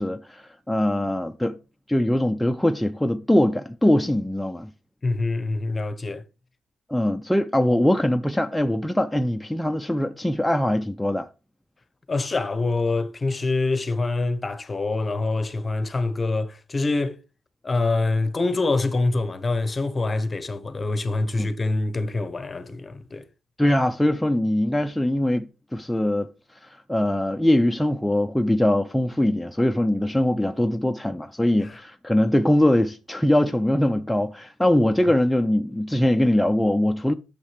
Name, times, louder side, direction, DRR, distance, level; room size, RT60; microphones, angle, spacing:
voice 1, 0.0-1.6 1.9-4.7 6.9-11.3 21.4-21.5 23.6-37.1, left 1 dB, 5° left, 0.4 m, -22 dB
voice 2, 5.0-6.2 12.1-17.2 17.6-23.2 31.6-31.8, left 3 dB, 25° left, 0.8 m, -25 dB
8.8 x 6.5 x 3.2 m
cardioid pair, 90°, 0 cm